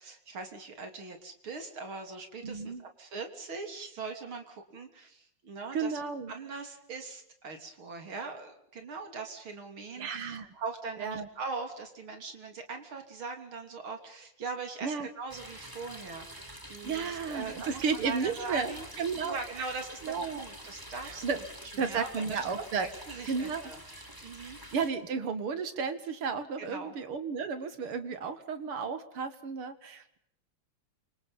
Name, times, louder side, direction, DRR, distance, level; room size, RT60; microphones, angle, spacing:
voice 1, 0.0-6.0 6.3-21.5 21.7-23.8 24.2-24.6 26.6-26.9, right 4 dB, 70° right, 5 dB, 4.1 m, -41 dB
voice 2, 2.4-2.8 5.7-6.3 10.0-10.5 11.0-11.3 14.8-15.1 16.8-19.4 20.0-20.4 21.0-21.4 21.8-22.9 23.3-23.7 24.7-30.2, right 5 dB, 90° right, 10 dB, 2.8 m, -33 dB
sound 1, 15.3-24.9, equal, 10° right, 3.5 m, -47 dB
28.5 x 26.0 x 5.7 m, 0.73 s
omnidirectional pair, 2.3 m